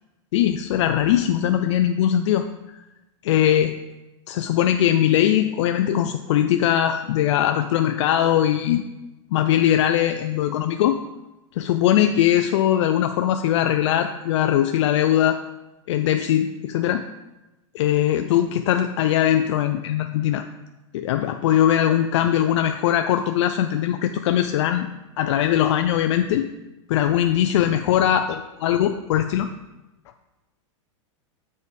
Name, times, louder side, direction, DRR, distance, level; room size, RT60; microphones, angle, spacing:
voice 1, 0.3-2.4 2.7-2.8 3.2-3.8 4.3-8.8 9.3-11.0 11.6-15.4 15.9-17.0 17.7-20.4 20.9-24.9 25.2-26.5 26.9-28.2 28.6-29.5, left 11 dB, 65° left, 7 dB, 0.4 m, -20 dB
7.0 x 4.7 x 4.2 m, 1.0 s
supercardioid pair, 145°, 16 cm